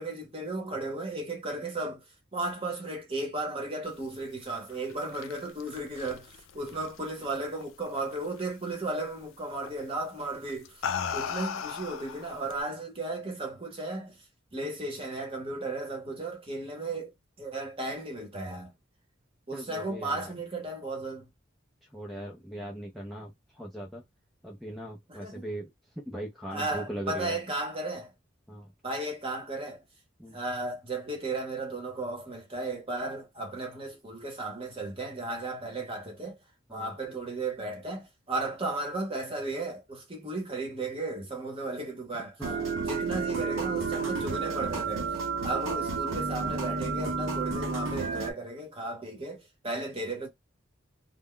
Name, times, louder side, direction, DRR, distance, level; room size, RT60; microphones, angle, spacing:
voice 1, 0.0-2.0 2.3-10.9 11.1-14.2 14.5-18.7 19.5-21.3 25.1-25.5 26.5-28.1 28.8-29.8 30.3-36.4 36.7-42.3 42.8-45.1 45.4-50.3, right 2 dB, 30° right, 0.8 m, -35 dB
sound 1, 4.7-7.6 8.0-8.4 9.6-9.9 10.5-12.6, left 7 dB, 75° left, 0.3 m, -36 dB
voice 2, 19.5-20.3 21.8-24.0 24.4-25.7 26.0-27.4 28.5-28.7 30.2-30.4 36.7-36.9 42.4-42.8, right 1 dB, ahead, 0.4 m, -39 dB
sound 2, 42.4-48.3, right 4 dB, 75° right, 0.7 m, -31 dB
2.2 x 2.0 x 3.5 m
head